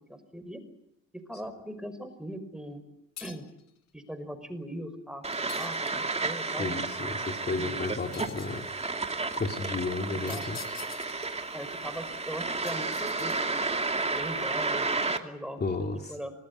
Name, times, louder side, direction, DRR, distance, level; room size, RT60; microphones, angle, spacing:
voice 1, 0.1-0.6 1.1-2.8 3.2-3.5 3.9-5.3 5.5-5.9 6.2-6.7 7.5-8.3 10.1-10.4 11.5-13.6 14.1-16.3, right 1 dB, ahead, 9 dB, 5.6 m, -40 dB
sound 1, 3.2-3.6 5.5-6.3 8.1-8.7 10.3-11.3 12.6-13.7, left 8 dB, 60° left, 2.4 m, -46 dB
sound 2, 5.2-15.2, right 3 dB, 20° right, 2.7 m, -32 dB
voice 2, 6.5-8.6 9.4-10.6 13.2-13.3 15.6-16.2, left 3 dB, 35° left, 3 dB, 3.1 m, -33 dB
27.0 x 19.0 x 9.9 m, 0.81 s
cardioid pair, 90°, 30 cm